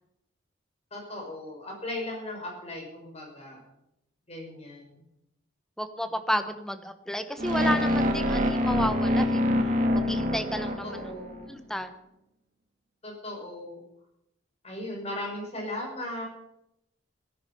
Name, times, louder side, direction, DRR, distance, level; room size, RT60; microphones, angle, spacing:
voice 1, 0.9-3.6 4.3-5.0 10.8-11.5 13.0-13.8 14.6-16.2, left 1 dB, 35° left, 0 dB, 5.7 m, -37 dB
voice 2, 5.8-9.4 9.9-11.0 11.5-11.9, equal, 5° left, 9 dB, 1.1 m, -31 dB
sound 1, 7.4-11.5, left 1 dB, 45° right, 2.3 m, -25 dB
16.5 x 13.5 x 5.5 m, 0.82 s
head